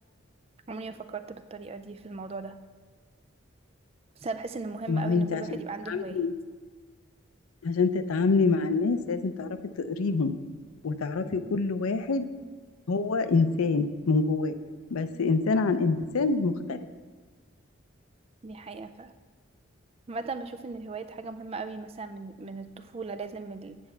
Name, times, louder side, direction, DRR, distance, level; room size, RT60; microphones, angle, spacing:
voice 1, 0.7-2.6 4.2-6.2 11.2-11.6 18.4-19.1 20.1-23.8, right 4 dB, 30° right, 9 dB, 0.3 m, -38 dB
voice 2, 4.9-5.6 5.9-6.3 7.6-10.3 10.8-12.3 12.9-14.5 14.9-16.8, left 4 dB, 85° left, 10 dB, 0.5 m, -26 dB
8.6 x 4.4 x 7.0 m, 1.4 s
head